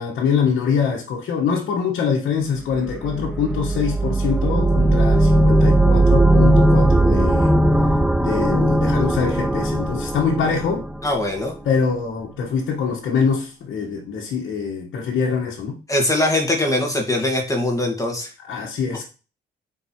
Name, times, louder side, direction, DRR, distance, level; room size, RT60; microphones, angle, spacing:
voice 1, 0.0-7.5 8.2-10.8 11.6-15.7 18.4-19.0, left 6 dB, 75° left, 1.4 m, -24 dB
sound 1, 2.7-11.6, right 1 dB, 5° right, 0.3 m, -18 dB
voice 2, 11.0-11.5 15.9-18.3, left 1 dB, 15° left, 1.8 m, -21 dB
7.3 x 4.6 x 3.0 m
cardioid pair, 90°, 20 cm